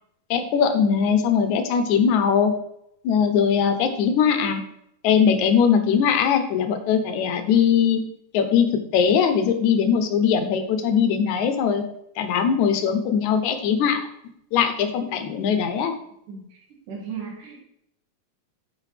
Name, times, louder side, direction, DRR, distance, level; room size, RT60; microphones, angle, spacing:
voice 1, 0.3-2.5 3.0-4.6 5.0-8.0 8.3-11.8 12.2-14.0 14.5-16.0, left 7 dB, 75° left, 7 dB, 2.1 m, -20 dB
voice 2, 16.3-16.6 16.9-17.6, right 6 dB, 75° right, -1 dB, 3.1 m, -35 dB
11.5 x 4.6 x 3.3 m, 0.75 s
omnidirectional pair, 3.7 m